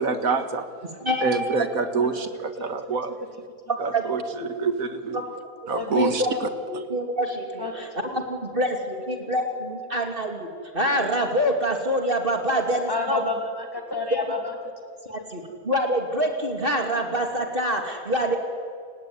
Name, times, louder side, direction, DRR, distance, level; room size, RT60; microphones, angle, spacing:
voice 1, 0.0-0.9 1.2-3.2 3.8-4.2 4.5-5.2 5.7-6.5, right 4 dB, 70° right, 9 dB, 2.1 m, -26 dB
voice 2, 1.0-1.6 3.7-4.0 4.4-4.5 5.6-6.3 6.7-10.5 10.7-13.3 14.1-14.2 15.1-18.4, equal, 35° right, 3 dB, 2.8 m, -26 dB
voice 3, 5.7-6.2 7.6-7.9 12.9-14.5, left 4 dB, 15° left, 3 dB, 3.2 m, -30 dB
29.0 x 17.5 x 9.7 m, 2.1 s
omnidirectional pair, 1.5 m